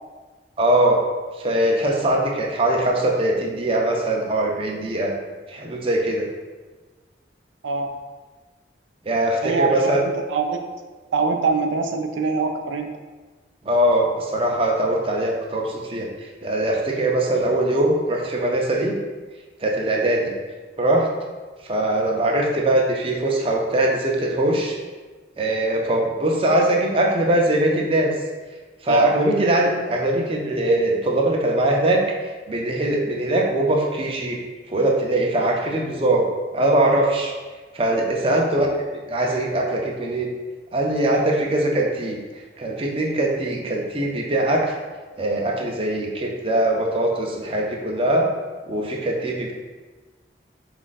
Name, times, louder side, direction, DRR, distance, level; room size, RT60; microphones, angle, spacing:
voice 1, 0.6-1.0 1.4-5.1 5.5-6.3 9.1-10.0 13.6-16.1 16.4-19.0 19.6-20.3 20.8-21.1 21.6-24.8 25.4-28.1 28.8-32.0 32.5-34.4 34.7-36.3 36.5-37.3 37.7-38.7 39.1-40.3 40.7-42.2 42.6-44.7 45.2-48.3 48.7-49.5, right 1 dB, 30° right, -1 dB, 0.5 m, -21 dB
voice 2, 9.4-10.6 11.1-12.9 28.9-29.1 38.2-38.4, right 4 dB, 90° right, 5 dB, 0.4 m, -23 dB
4.1 x 2.5 x 4.0 m, 1.3 s
head